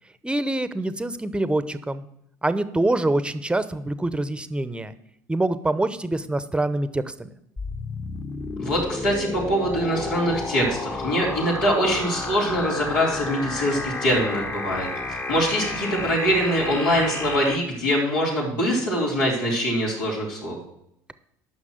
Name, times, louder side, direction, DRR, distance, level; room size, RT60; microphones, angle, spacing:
voice 1, 0.2-2.0 2.4-4.9 5.3-7.3, right 2 dB, 10° right, 13 dB, 0.8 m, -25 dB
sound 1, 7.6-17.6, left 3 dB, 25° left, 1.1 m, -31 dB
voice 2, 8.6-20.6, equal, 85° left, -5 dB, 3.9 m, -23 dB
9.6 x 6.1 x 7.9 m, 0.77 s
hypercardioid pair, 70°, 10 cm